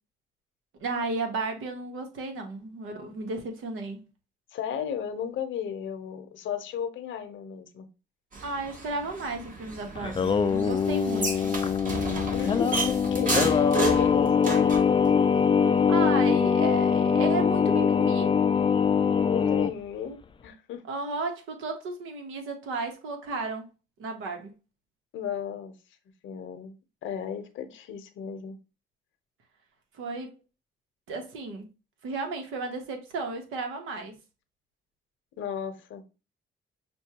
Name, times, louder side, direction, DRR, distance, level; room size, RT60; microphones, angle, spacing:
voice 1, 0.8-4.0 8.4-11.5 15.6-18.3 20.9-23.7 24.0-24.5 30.0-30.3 31.1-31.7 32.0-34.1, right 3 dB, 85° right, 1.1 m, -33 dB
voice 2, 4.5-7.9 12.3-15.1 19.3-20.8 25.1-25.7 26.2-26.8 27.0-28.6 35.4-36.0, left 8 dB, 75° left, 0.8 m, -35 dB
sound 1, 8.3-14.9, right 2 dB, 40° right, 1.3 m, -32 dB
Singing, 10.0-19.7, left 6 dB, 25° left, 0.4 m, -23 dB
6.1 x 2.3 x 2.8 m
cardioid pair, 90°, 20 cm